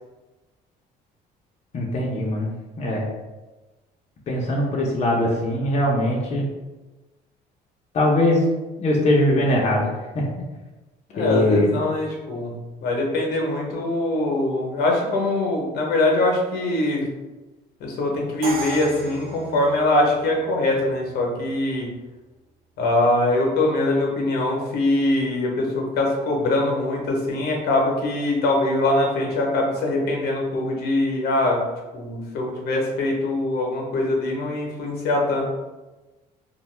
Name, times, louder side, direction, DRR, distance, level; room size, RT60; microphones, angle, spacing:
voice 1, 1.7-2.5 2.8-3.0 4.3-6.4 7.9-8.5 8.8-9.9 10.1-10.2 11.2-11.8, left 1 dB, 40° left, -3 dB, 0.6 m, -21 dB
voice 2, 11.1-17.1 17.8-21.9 22.8-31.6 31.9-35.5, left 2 dB, 70° left, 0 dB, 0.8 m, -23 dB
Crash cymbal, 18.4-20.3, right 3 dB, 65° right, 0.5 m, -34 dB
2.5 x 2.2 x 3.1 m, 1.1 s
cardioid pair, 110°, 17 cm